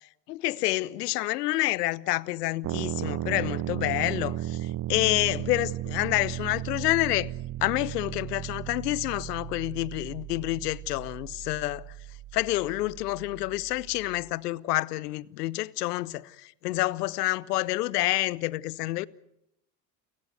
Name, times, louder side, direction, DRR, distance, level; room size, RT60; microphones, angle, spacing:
voice 1, 0.3-4.6 4.9-7.3 7.6-11.8 12.3-16.3 16.6-19.1, left 18 dB, 75° left, 1.0 m, -28 dB
sound 1, 2.6-14.3, right 13 dB, 40° right, 1.1 m, -35 dB
29.5 x 16.5 x 9.5 m
hypercardioid pair, 70°, 48 cm